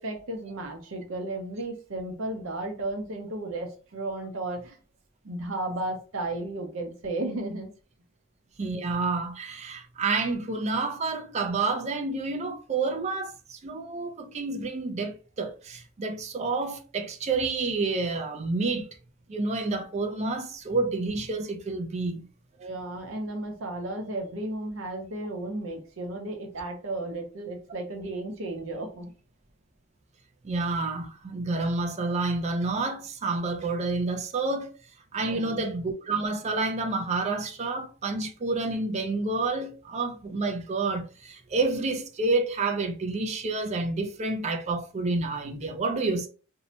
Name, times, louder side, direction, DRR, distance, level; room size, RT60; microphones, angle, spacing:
voice 1, 0.0-4.8 5.2-7.7 22.6-29.1 35.2-35.6, right 2 dB, 70° right, 0.6 m, -34 dB
voice 2, 8.6-18.9 19.3-22.3 30.4-34.7 35.1-46.3, right 3 dB, 30° right, 0.4 m, -29 dB
2.7 x 2.1 x 2.7 m
head